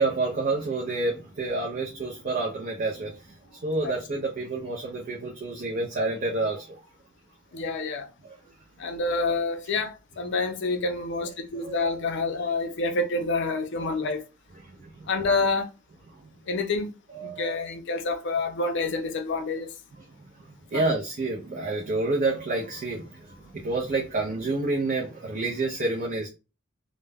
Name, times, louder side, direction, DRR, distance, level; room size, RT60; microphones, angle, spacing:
voice 1, 0.0-6.8 11.6-11.9 14.6-15.1 16.2-16.3 17.1-17.6 20.7-26.3, right 3 dB, 40° right, 0.5 m, -29 dB
voice 2, 7.5-8.1 8.8-14.2 15.1-15.7 16.5-16.9 17.2-19.7 20.7-21.0, left 3 dB, 60° left, 0.5 m, -28 dB
2.2 x 2.0 x 3.3 m
head